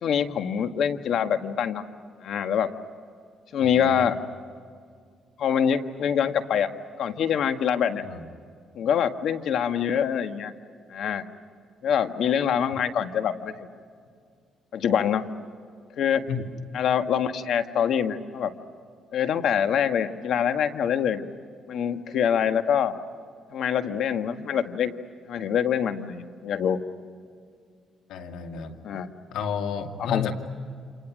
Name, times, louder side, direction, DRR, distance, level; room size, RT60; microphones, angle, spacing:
voice 1, 0.0-1.8 2.2-2.7 3.5-4.2 5.4-6.7 7.0-8.0 8.7-10.5 10.9-11.2 11.8-13.7 14.7-15.2 16.0-16.3 16.7-18.5 19.1-21.2 21.7-22.9 23.5-24.9 25.3-26.8 28.8-29.1 30.0-30.3, left 8 dB, 70° left, 8 dB, 1.6 m, -25 dB
voice 2, 3.6-4.1 8.0-8.3 16.3-16.5 28.1-28.8 29.3-30.3, left 7 dB, 85° left, 5 dB, 2.4 m, -32 dB
29.5 x 27.5 x 6.3 m, 2.1 s
cardioid pair, 90°, 0 cm